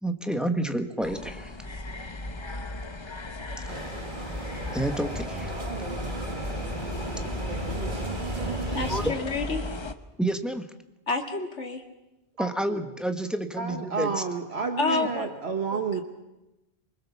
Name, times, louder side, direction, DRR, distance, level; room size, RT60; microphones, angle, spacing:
voice 1, 0.0-1.6 3.6-3.7 4.7-5.5 8.9-9.1 10.2-10.7 12.4-14.2, right 1 dB, ahead, 7 dB, 1.4 m, -29 dB
sound 1, 1.0-9.9, left 2 dB, 25° left, 0.9 m, -36 dB
sound 2, 3.7-9.1, right 2 dB, 45° right, 1.7 m, -34 dB
voice 2, 8.7-9.7 11.1-11.8 14.8-15.3 15.7-15.8, left 3 dB, 90° left, 4 dB, 2.4 m, -29 dB
voice 3, 12.4-12.8 13.6-16.0, right 4 dB, 65° right, 6 dB, 1.5 m, -31 dB
24.0 x 21.0 x 7.1 m, 0.99 s
omnidirectional pair, 1.2 m